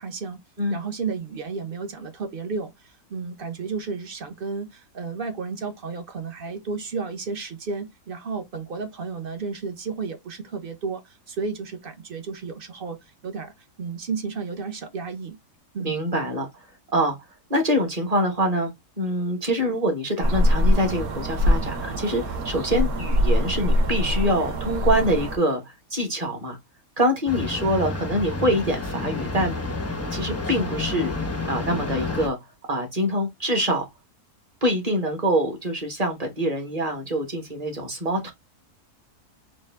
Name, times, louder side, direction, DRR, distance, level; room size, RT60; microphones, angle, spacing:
voice 1, 0.0-0.4 0.7-15.4 15.7-16.0, right 4 dB, 45° right, 0.8 m, -32 dB
voice 2, 15.8-16.5 16.9-17.2 17.5-18.7 19.0-25.6 25.9-26.6 27.0-29.5 30.1-31.1 31.4-32.4 32.7-33.9 34.6-38.3, equal, 25° right, 1.2 m, -24 dB
sound 1, 20.2-25.4, left 1 dB, 70° right, 1.4 m, -23 dB
sound 2, 27.3-32.3, left 2 dB, 25° left, 0.3 m, -30 dB
4.3 x 2.6 x 3.3 m
omnidirectional pair, 1.7 m